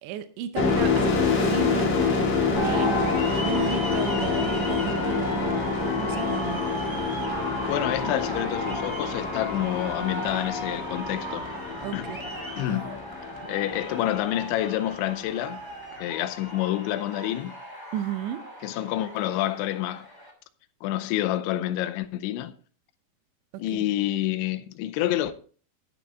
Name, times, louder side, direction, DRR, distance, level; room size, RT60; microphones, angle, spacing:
voice 1, 0.0-3.0 3.4-6.6 11.8-12.3 12.7-12.8 17.9-18.4 23.7-23.8, right 9 dB, 80° right, 2.9 m, -34 dB
sound 1, 0.6-14.0, left 4 dB, 40° left, 2.4 m, -27 dB
sound 2, 2.5-20.3, equal, 25° right, 0.6 m, -35 dB
voice 2, 7.7-11.5 11.9-12.1 12.6-13.0 13.4-15.6 16.0-17.5 18.6-20.1 20.8-22.5 23.6-25.3, left 13 dB, 85° left, 3.0 m, -28 dB
11.5 x 10.0 x 3.4 m
omnidirectional pair, 5.4 m